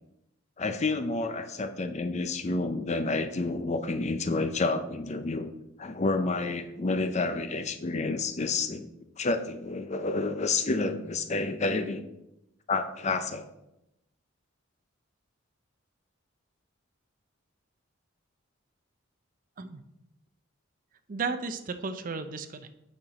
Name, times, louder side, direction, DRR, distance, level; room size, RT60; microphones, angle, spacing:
voice 1, 0.6-5.5 5.8-8.9 9.2-12.0 12.7-13.4, left 3 dB, 35° left, 9 dB, 0.5 m, -29 dB
voice 2, 21.1-22.7, right 4 dB, 40° right, 10 dB, 0.5 m, -34 dB
8.0 x 5.7 x 4.1 m, 0.88 s
head